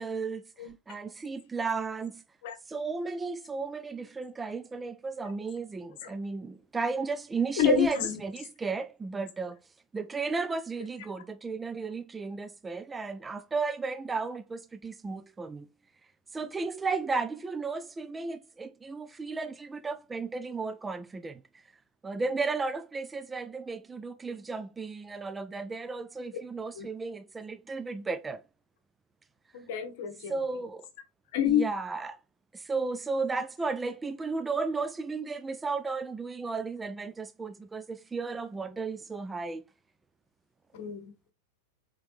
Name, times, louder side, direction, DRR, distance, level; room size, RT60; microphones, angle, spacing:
voice 1, 0.0-2.2 2.7-9.6 9.9-15.7 16.3-21.4 22.0-28.4 30.3-30.9 31.5-32.2 32.5-39.6, right 4 dB, 15° right, 0.3 m, -34 dB
voice 2, 7.6-8.2 26.7-26.9 29.5-30.4 31.3-31.6 40.7-41.3, left 7 dB, 50° left, 1.0 m, -28 dB
4.3 x 3.7 x 3.2 m
figure-of-eight pair, 90°, 0 cm